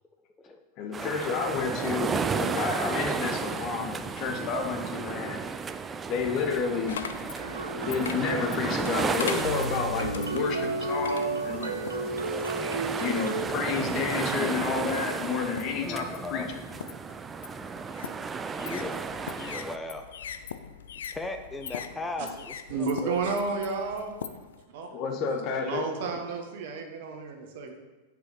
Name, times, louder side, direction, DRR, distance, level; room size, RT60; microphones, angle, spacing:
voice 1, 0.8-5.4 6.1-7.0 7.7-12.5 13.0-16.4 24.9-25.8, left 5 dB, 50° left, 5 dB, 1.1 m, -30 dB
sound 1, 0.9-19.8, right 5 dB, 20° right, 0.4 m, -33 dB
sound 2, 6.9-12.2 12.8-13.4 14.1-14.6 15.0-24.6, left 7 dB, 80° left, 0.4 m, -41 dB
sound 3, 7.4-13.4, right 3 dB, 90° right, 0.5 m, -33 dB
voice 2, 15.7-16.5 18.5-19.0 19.3-20.1 21.1-23.4, left 2 dB, 10° left, 5 dB, 0.7 m, -37 dB
voice 3, 22.7-24.2 24.7-25.0 25.6-27.7, right 4 dB, 65° right, 4 dB, 1.2 m, -31 dB
6.5 x 4.9 x 5.5 m, 1.2 s
hypercardioid pair, 100°, 0 cm